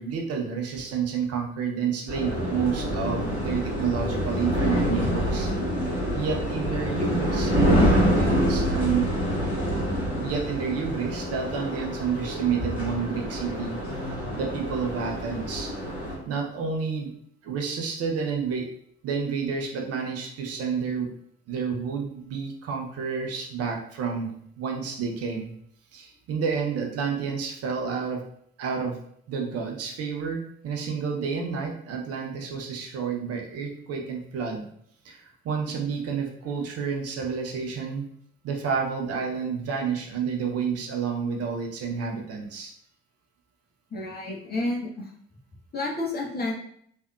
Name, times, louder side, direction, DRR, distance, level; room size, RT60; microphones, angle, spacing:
voice 1, 0.0-5.5 6.1-9.1 10.2-14.0 14.4-15.7 16.3-17.1 17.4-18.6 19.0-21.1 21.5-25.5 25.9-28.2 28.6-29.0 29.3-34.7 35.0-38.0 38.4-42.7, right 6 dB, 50° right, 1 dB, 0.7 m, -30 dB
sound 1, 2.1-16.2, equal, 90° left, 0.6 m, -26 dB
voice 2, 43.9-45.1 45.7-46.5, left 2 dB, 30° left, -2 dB, 1.0 m, -30 dB
3.3 x 2.6 x 2.3 m, 0.66 s
figure-of-eight pair, 45°, 32 cm